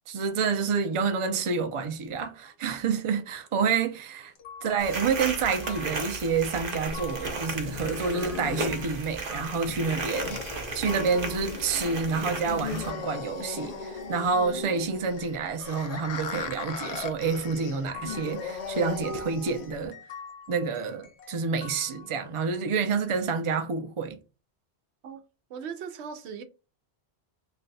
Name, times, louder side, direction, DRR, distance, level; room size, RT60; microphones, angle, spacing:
voice 1, 0.1-4.3 4.6-10.4 10.7-20.0 20.5-24.2, right 5 dB, 40° right, 0.5 m, -28 dB
sound 1, 4.4-14.8 15.2-22.5, left 5 dB, 85° left, 1.1 m, -48 dB
sound 2, 4.8-12.9, right 3 dB, 60° right, 1.0 m, -35 dB
sound 3, 6.9-19.9, left 4 dB, 50° left, 0.5 m, -37 dB
voice 2, 25.5-26.4, right 6 dB, 90° right, 0.9 m, -38 dB
3.3 x 2.2 x 3.9 m
omnidirectional pair, 1.1 m